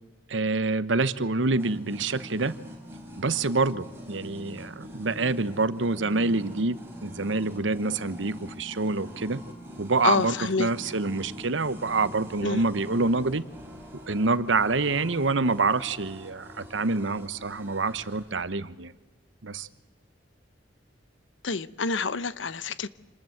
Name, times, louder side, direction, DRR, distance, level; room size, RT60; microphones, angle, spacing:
voice 1, 0.3-2.6 3.2-9.4 9.8-13.4 14.1-18.9 19.4-19.7, right 3 dB, 85° right, 15 dB, 1.1 m, -26 dB
sound 1, 1.6-18.4, equal, 10° right, 4.7 m, -44 dB
voice 2, 10.0-10.7 12.4-12.6 21.4-22.9, left 4 dB, 85° left, 17 dB, 0.9 m, -27 dB
26.5 x 20.0 x 7.9 m, 1.2 s
head